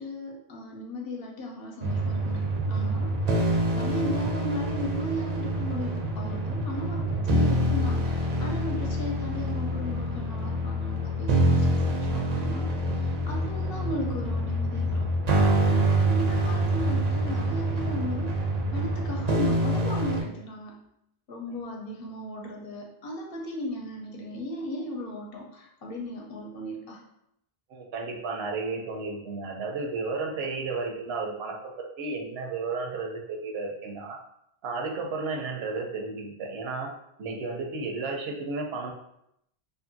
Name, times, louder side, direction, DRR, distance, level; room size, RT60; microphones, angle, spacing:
voice 1, 0.0-2.4 2.7-3.1 3.4-15.4 15.7-18.4 18.7-20.7 21.3-27.0, left 1 dB, 65° left, -1 dB, 0.8 m, -36 dB
sound 1, 1.8-20.2, right 1 dB, 55° right, 0.5 m, -26 dB
voice 2, 27.7-34.2 34.6-36.9 37.2-38.9, right 3 dB, 75° right, 1 dB, 0.8 m, -33 dB
2.6 x 2.5 x 2.6 m, 0.78 s
omnidirectional pair, 1.1 m